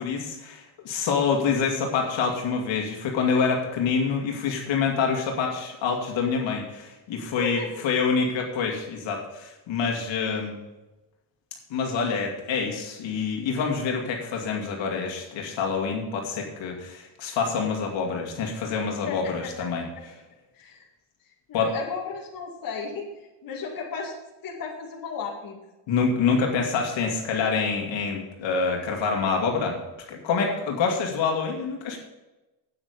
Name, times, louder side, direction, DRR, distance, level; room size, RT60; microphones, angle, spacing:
voice 1, 0.0-10.6 11.7-20.1 21.5-21.7 25.9-29.8 30.1-32.0, left 5 dB, 65° left, 1 dB, 2.3 m, -26 dB
voice 2, 7.4-7.7 19.0-19.7 20.5-20.8 21.5-23.1 23.4-24.1 24.4-25.6, left 5 dB, 45° left, -2 dB, 2.2 m, -34 dB
8.9 x 8.9 x 5.2 m, 1.0 s
cardioid pair, 145°, 48 cm